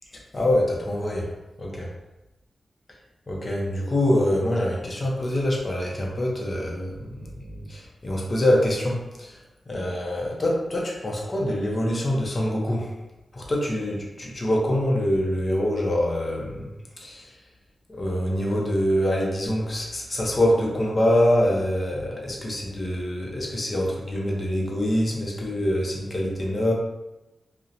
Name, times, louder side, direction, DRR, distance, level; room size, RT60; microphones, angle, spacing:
voice 1, 0.1-1.3 1.6-1.9 3.3-9.4 9.7-12.9 13.3-16.7 17.0-17.3 17.9-26.7, left 1 dB, 40° left, -2 dB, 0.6 m, -25 dB
2.7 x 2.1 x 2.5 m, 1.0 s
cardioid pair, 75°, 0 cm